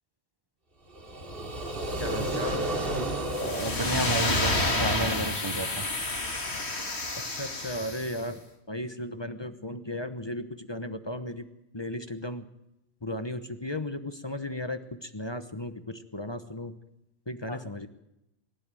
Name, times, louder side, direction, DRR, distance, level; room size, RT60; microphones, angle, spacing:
sound 1, 0.9-4.9, right 1 dB, 60° right, 3.1 m, -32 dB
voice 1, 2.0-2.7 7.2-8.4 8.7-11.5 11.7-12.5 13.0-16.8 17.3-17.9, left 1 dB, 25° left, 9 dB, 1.1 m, -35 dB
sound 2, 3.3-8.2, left 2 dB, 75° left, 2.7 m, -29 dB
voice 2, 3.4-5.9 17.5-17.6, right 2 dB, 25° right, 9 dB, 0.9 m, -31 dB
24.0 x 12.0 x 9.1 m, 0.87 s
omnidirectional pair, 1.1 m